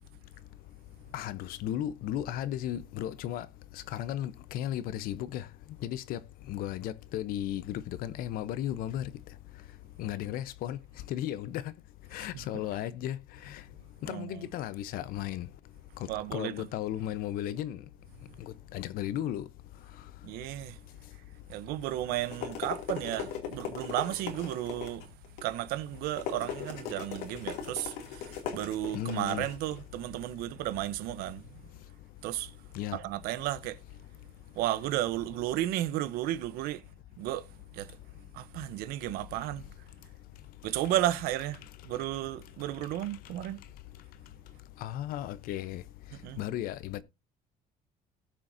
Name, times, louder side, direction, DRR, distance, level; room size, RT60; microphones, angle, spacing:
voice 1, 1.1-3.5 3.9-5.5 5.8-6.2 6.5-9.1 10.0-10.8 11.1-11.6 12.1-13.2 13.4-13.6 14.0-15.5 16.3-17.8 18.4-19.5 28.9-29.4 32.7-33.0 44.8-45.8 46.4-47.0, left 12 dB, 70° left, 0.8 m, -35 dB
voice 2, 14.0-14.5 16.1-16.7 20.2-20.8 21.5-25.1 25.4-31.6 32.2-32.5 32.9-33.8 34.6-36.8 37.2-38.0 38.3-39.7 40.6-43.6 46.1-46.4, right 14 dB, 80° right, 0.8 m, -33 dB
sound 1, 21.9-30.8, left 8 dB, 85° left, 2.6 m, -40 dB
18.5 x 6.3 x 2.7 m
cardioid pair, 115°, 16 cm